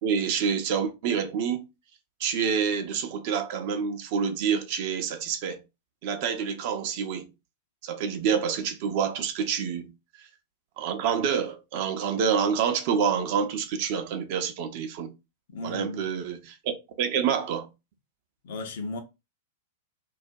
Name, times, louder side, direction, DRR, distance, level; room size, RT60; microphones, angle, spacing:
voice 1, 0.0-1.7 2.2-5.6 6.0-7.3 7.8-9.9 10.8-15.1 15.6-17.7, right 7 dB, 45° right, 0.5 m, -27 dB
voice 2, 15.5-16.1 18.4-19.0, left 3 dB, 55° left, 0.6 m, -35 dB
2.3 x 2.1 x 2.6 m
figure-of-eight pair, 95°, 0 cm